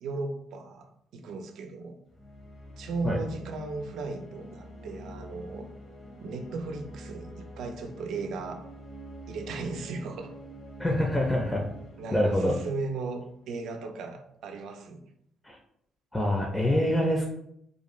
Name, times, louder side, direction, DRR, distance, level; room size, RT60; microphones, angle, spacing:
voice 1, 0.0-2.0 2.8-5.7 6.2-8.7 9.3-10.3 12.0-15.0, right 3 dB, 75° right, 5 dB, 0.4 m, -36 dB
sound 1, 2.1-13.6, equal, 40° left, 0.7 m, -46 dB
voice 2, 10.8-11.6 12.1-12.5 15.4-15.6 16.1-17.3, left 1 dB, 10° left, 0 dB, 0.4 m, -25 dB
2.5 x 2.2 x 3.0 m, 0.73 s
cardioid pair, 90°, 0 cm